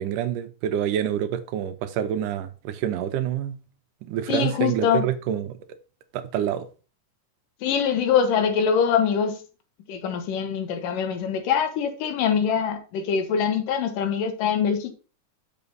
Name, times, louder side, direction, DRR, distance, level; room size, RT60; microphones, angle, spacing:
voice 1, 0.0-3.6 4.0-5.6 6.1-6.7, right 10 dB, 80° right, 2.3 m, -27 dB
voice 2, 4.3-5.1 7.6-9.4 9.9-14.9, left 7 dB, 85° left, 2.9 m, -23 dB
7.0 x 5.9 x 5.4 m
omnidirectional pair, 3.7 m